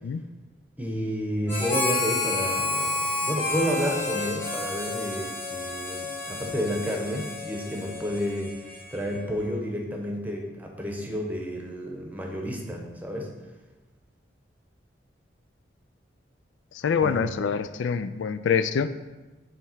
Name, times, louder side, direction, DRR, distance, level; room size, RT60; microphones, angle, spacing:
voice 1, 0.8-8.5 8.9-13.3 17.0-17.3, equal, 10° right, 1 dB, 0.9 m, -30 dB
Harmonica, 1.5-9.2, left 2 dB, 15° left, 1.3 m, -30 dB
voice 2, 16.8-18.9, left 6 dB, 90° left, 12 dB, 0.4 m, -25 dB
7.5 x 3.4 x 5.6 m, 1.2 s
head